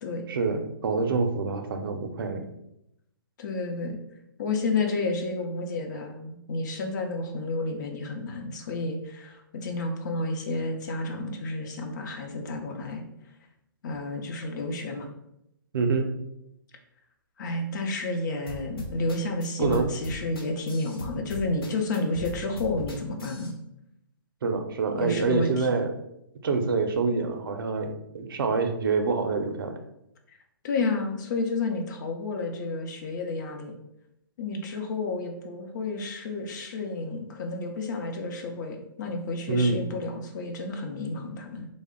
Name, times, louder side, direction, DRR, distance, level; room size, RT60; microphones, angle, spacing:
voice 1, 0.3-2.5 15.7-16.1 19.6-19.9 24.4-25.9 26.4-29.8 39.5-39.8, right 4 dB, 70° right, 6 dB, 0.5 m, -26 dB
voice 2, 3.4-4.0 4.4-13.0 13.8-15.1 17.4-23.5 24.9-25.7 30.6-33.7 34.4-41.7, left 2 dB, 50° left, 3 dB, 0.7 m, -31 dB
sound 1, 18.5-23.5, equal, 80° left, 0.9 m, -38 dB
3.3 x 2.1 x 3.6 m, 0.82 s
hypercardioid pair, 140°, 12 cm